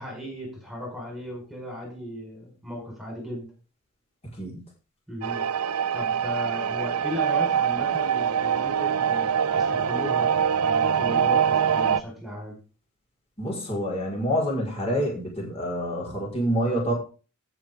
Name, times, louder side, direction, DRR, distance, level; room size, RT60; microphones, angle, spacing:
voice 1, 0.0-3.5 5.1-5.5 5.9-10.3 10.6-12.6, left 1 dB, ahead, 0 dB, 5.1 m, -36 dB
sound 1, 5.2-12.0, right 8 dB, 80° right, 0.6 m, -24 dB
voice 2, 13.4-16.9, equal, 30° left, -3 dB, 4.9 m, -27 dB
18.0 x 6.3 x 3.7 m, 0.34 s
head